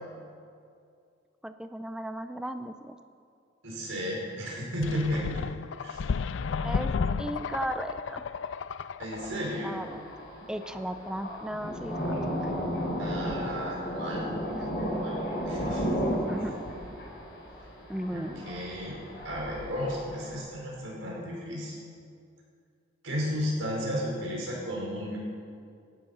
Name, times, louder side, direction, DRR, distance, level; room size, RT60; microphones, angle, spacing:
voice 1, 1.4-3.0 6.6-8.2 9.6-10.0 10.5-12.5 14.4-14.6 16.1-16.6 17.9-18.5, right 1 dB, 5° right, 9 dB, 0.5 m, -36 dB
voice 2, 3.6-5.4 5.8-6.0 9.0-9.8 13.0-16.0 18.1-19.0 19.2-21.8 23.0-25.2, equal, 85° right, -3 dB, 5.3 m, -34 dB
sound 1, 4.8-9.4, left 5 dB, 70° left, 0.4 m, -32 dB
Thunder, 9.1-20.3, equal, 55° left, 5.3 m, -34 dB
18.0 x 13.0 x 5.6 m, 2.3 s
head